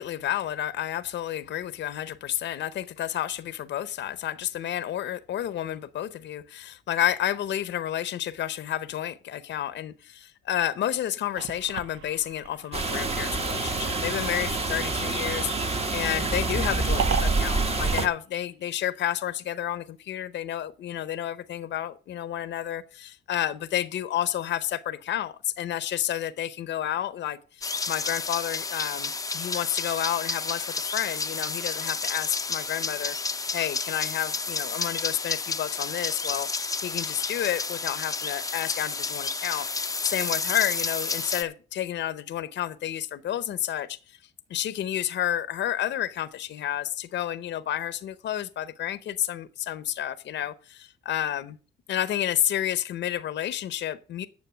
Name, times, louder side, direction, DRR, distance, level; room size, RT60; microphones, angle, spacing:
voice 1, 0.0-44.2 44.5-51.6 51.9-54.3, left 11 dB, 65° left, 0.7 m, -30 dB
sound 1, 11.3-19.0, right 7 dB, 75° right, 0.7 m, -38 dB
sound 2, 12.7-18.1, right 3 dB, 30° right, 1.3 m, -27 dB
sound 3, 27.6-41.4, left 4 dB, 15° left, 0.6 m, -31 dB
9.4 x 6.8 x 6.7 m
cardioid pair, 90°, 20 cm